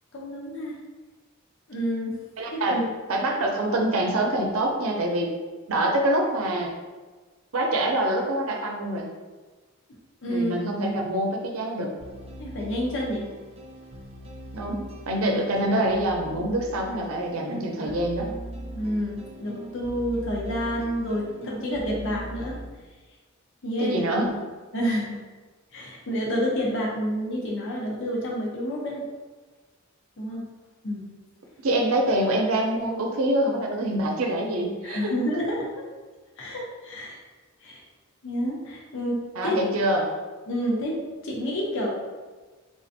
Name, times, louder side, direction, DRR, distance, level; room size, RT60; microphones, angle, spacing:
voice 1, 0.1-0.8 1.7-2.2 2.5-2.8 10.2-10.5 12.4-13.3 17.4-18.0 18.7-22.6 23.6-24.2 24.7-25.2 25.7-29.0 30.2-30.5 30.8-31.1 34.8-35.8 36.4-37.2 37.6-37.8 38.2-39.6 40.5-41.9, equal, 65° left, -2 dB, 0.6 m, -29 dB
voice 2, 2.4-2.8 3.1-5.3 5.7-6.7 7.5-9.0 10.3-11.9 14.5-18.3 23.8-24.4 31.6-35.1 39.3-40.0, right 1 dB, 75° right, 1 dB, 0.6 m, -25 dB
sound 1, 12.0-22.7, right 1 dB, 30° right, 0.4 m, -40 dB
3.6 x 2.5 x 2.6 m, 1.3 s
head